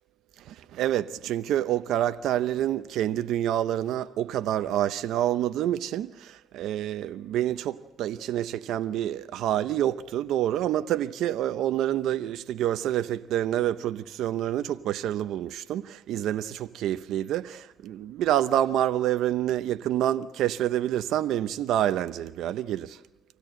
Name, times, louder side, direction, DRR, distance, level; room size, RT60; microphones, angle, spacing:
voice 1, 0.4-23.0, right 12 dB, 85° right, 0.7 m, -27 dB
25.0 x 16.0 x 7.6 m
cardioid pair, 90°, 0 cm